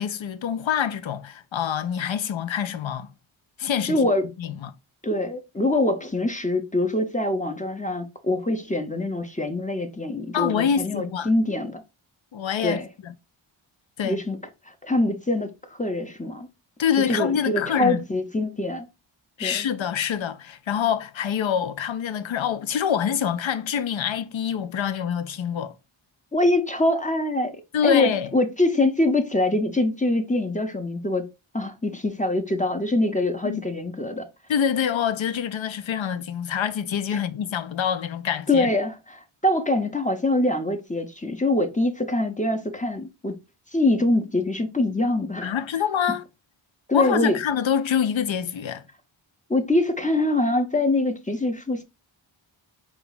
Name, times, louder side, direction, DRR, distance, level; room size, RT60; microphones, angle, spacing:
voice 1, 0.0-3.1 3.6-4.0 4.4-4.7 10.3-11.3 12.3-13.1 14.0-14.2 16.8-18.0 19.4-25.7 27.7-28.3 33.4-33.6 34.5-38.7 45.4-46.2 46.9-48.8, left 8 dB, 65° left, 0.6 m, -26 dB
voice 2, 3.9-4.3 5.0-11.8 12.6-12.9 14.0-14.4 14.8-16.5 17.0-18.9 19.4-19.7 26.3-27.6 27.8-31.3 31.5-34.2 38.5-43.4 43.7-45.5 46.9-47.4 49.5-51.8, left 2 dB, 15° left, 0.6 m, -24 dB
4.6 x 2.3 x 3.9 m
wide cardioid pair, 95°, 49 cm